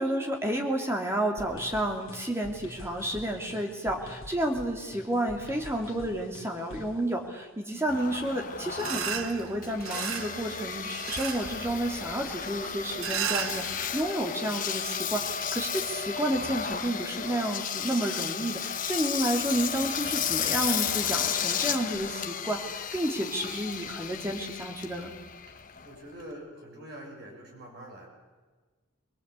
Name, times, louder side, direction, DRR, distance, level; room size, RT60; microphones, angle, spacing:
voice 1, 0.0-25.1, right 1 dB, 10° right, 2 dB, 2.7 m, -31 dB
sound 1, 1.4-7.0, left 1 dB, 85° left, 1.9 m, -46 dB
Engine, 7.9-26.3, left 8 dB, 40° left, 1.2 m, -33 dB
sound 2, 8.8-14.1, right 8 dB, 85° right, 1.1 m, -36 dB
voice 2, 25.8-28.1, right 1 dB, 55° right, -1 dB, 6.7 m, -44 dB
22.5 x 20.5 x 8.4 m, 1.4 s
head